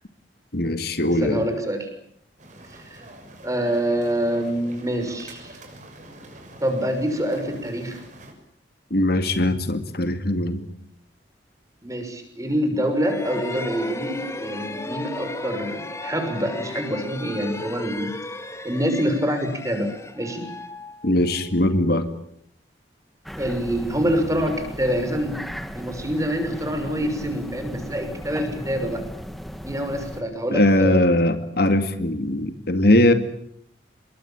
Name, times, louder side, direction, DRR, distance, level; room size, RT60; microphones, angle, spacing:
voice 1, 0.5-1.4 8.9-10.6 21.0-22.1 30.5-33.1, left 1 dB, 60° left, 9 dB, 2.3 m, -20 dB
voice 2, 1.2-1.9 2.7-3.0 3.4-5.6 6.6-8.0 11.8-18.1 18.6-20.5 23.4-25.4 25.7-29.0 29.6-31.0, equal, 20° right, 7 dB, 6.3 m, -26 dB
sound 1, 2.4-8.3, right 1 dB, 45° right, 6.7 m, -45 dB
sound 2, 12.9-21.6, left 2 dB, 15° left, 2.3 m, -35 dB
sound 3, 23.3-30.2, equal, ahead, 1.8 m, -36 dB
28.0 x 22.5 x 8.9 m, 0.67 s
head